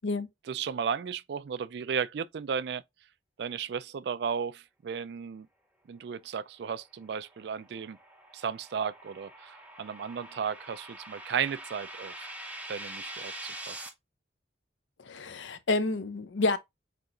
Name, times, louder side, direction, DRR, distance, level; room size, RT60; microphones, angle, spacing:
voice 1, 0.5-2.8 3.4-5.5 5.9-8.0 8.3-12.3 12.7-13.8, right 7 dB, 60° right, 0.3 m, -34 dB
sound 1, 7.1-13.9, right 1 dB, 10° right, 0.6 m, -44 dB
voice 2, 15.1-16.6, left 3 dB, 80° left, 0.6 m, -29 dB
5.9 x 2.9 x 2.5 m
head